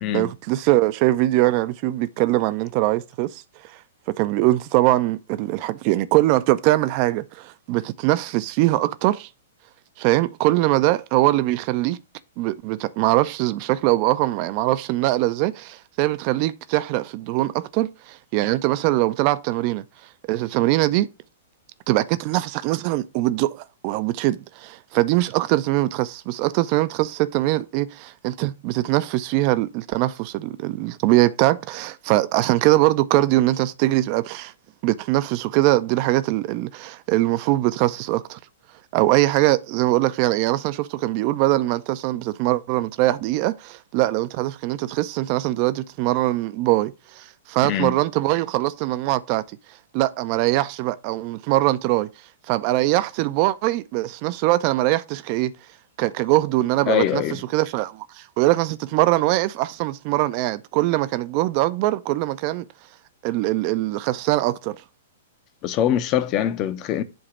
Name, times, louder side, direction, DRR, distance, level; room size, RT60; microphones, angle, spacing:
voice 1, 0.1-3.4 3.7-3.8 4.1-9.3 10.0-12.0 12.4-19.8 20.3-21.1 21.9-34.5 34.8-38.4 38.9-49.4 49.9-52.1 52.5-55.5 56.0-62.6 63.2-64.8, right 17 dB, 40° right, 0.4 m, -22 dB
voice 2, 47.6-47.9 56.9-57.4 65.6-67.0, left 10 dB, 35° left, 0.7 m, -23 dB
7.8 x 2.9 x 6.1 m
figure-of-eight pair, 110°, 0 cm